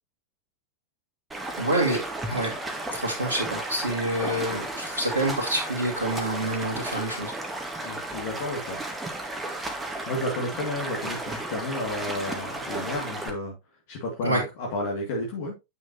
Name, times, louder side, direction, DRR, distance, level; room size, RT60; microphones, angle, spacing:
Stream, 1.3-13.3, right 2 dB, 10° right, 1.7 m, -34 dB
voice 1, 1.6-2.0 2.3-2.5 2.9-7.3 14.2-14.4, right 1 dB, 80° right, -3 dB, 1.9 m, -27 dB
voice 2, 7.8-8.8 10.1-13.5 13.9-15.5, left 1 dB, 50° left, -2 dB, 2.3 m, -31 dB
8.4 x 6.3 x 2.9 m, 0.24 s
figure-of-eight pair, 90°, 0 cm